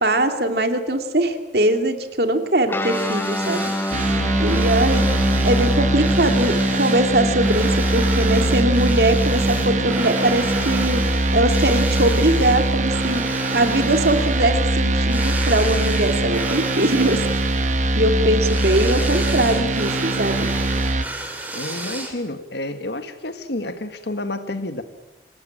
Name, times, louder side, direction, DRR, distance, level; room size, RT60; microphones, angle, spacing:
voice 1, 0.0-3.7 4.4-5.1 5.4-11.0 11.3-13.2 13.5-17.2 18.0-20.5, right 1 dB, 60° right, 6 dB, 2.6 m, -21 dB
Guitar, 2.7-12.6, equal, 10° left, 1.2 m, -26 dB
sound 1, 2.8-22.4, right 1 dB, 10° right, 3.4 m, -33 dB
sound 2, 3.9-21.0, right 2 dB, 40° right, 1.1 m, -22 dB
voice 2, 21.5-24.8, left 1 dB, 65° left, 9 dB, 1.9 m, -30 dB
26.0 x 18.0 x 8.8 m, 1.1 s
head